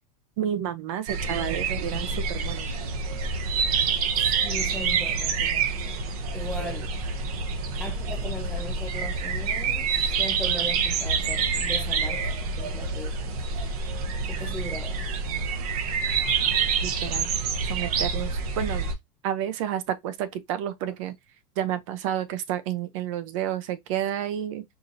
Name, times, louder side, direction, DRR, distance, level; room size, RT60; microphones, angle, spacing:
voice 1, 0.4-2.7 16.8-17.3 17.7-18.9 19.2-21.1 21.6-24.6, right 10 dB, 60° right, 0.6 m, -30 dB
sound 1, 1.1-18.9, right 5 dB, 80° right, 1.0 m, -27 dB
voice 2, 4.2-5.8 6.3-6.9 7.8-13.7 14.3-15.1, left 1 dB, 5° left, 0.7 m, -39 dB
4.8 x 2.6 x 2.6 m
supercardioid pair, 160°, 19 cm